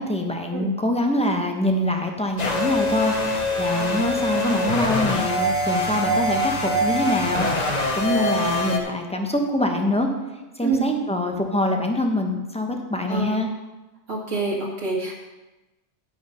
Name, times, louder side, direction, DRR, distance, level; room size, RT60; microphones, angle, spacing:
voice 1, 0.0-7.5 8.0-10.1 10.6-13.5, left 1 dB, 5° left, 2 dB, 1.0 m, -24 dB
sound 1, 2.4-8.8, left 1 dB, 35° left, 1.1 m, -24 dB
voice 2, 8.2-8.5 10.6-10.9 13.1-13.3 14.1-15.1, right 3 dB, 75° right, -3 dB, 2.2 m, -27 dB
11.0 x 6.0 x 5.7 m, 1.1 s
omnidirectional pair, 1.3 m